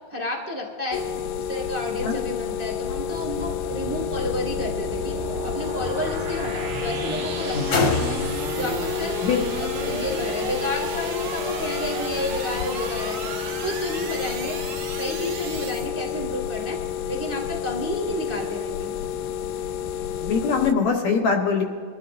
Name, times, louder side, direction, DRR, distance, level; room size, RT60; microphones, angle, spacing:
voice 1, 0.1-1.0 1.4-5.2 5.4-8.2 8.5-9.1 9.5-13.2 13.6-14.6 15.0-16.8 17.0-18.9, left 1 dB, 10° right, -2 dB, 0.7 m, -31 dB
sound 1, 0.9-20.7, left 9 dB, 85° left, 2.4 m, -30 dB
sound 2, 1.7-15.9, right 4 dB, 80° right, 3.4 m, -34 dB
sound 3, 2.8-10.1, left 3 dB, 45° left, 1.5 m, -32 dB
voice 2, 20.2-21.6, left 5 dB, 65° left, 2 dB, 2.0 m, -22 dB
24.0 x 14.0 x 2.6 m, 2.2 s
omnidirectional pair, 4.3 m